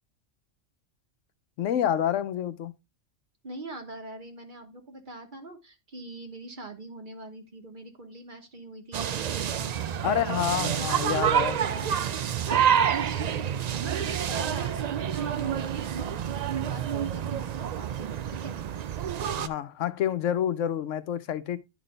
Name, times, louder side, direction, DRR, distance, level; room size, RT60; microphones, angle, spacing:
voice 1, 1.6-2.7 10.0-11.9 19.4-21.6, left 10 dB, 85° left, 1.0 m, -28 dB
voice 2, 3.4-9.7 10.4-11.9 12.4-18.6, right 2 dB, 45° right, 1.3 m, -43 dB
sound 1, 8.9-19.5, right 9 dB, 85° right, 0.3 m, -28 dB
11.0 x 4.1 x 3.2 m
omnidirectional pair, 1.3 m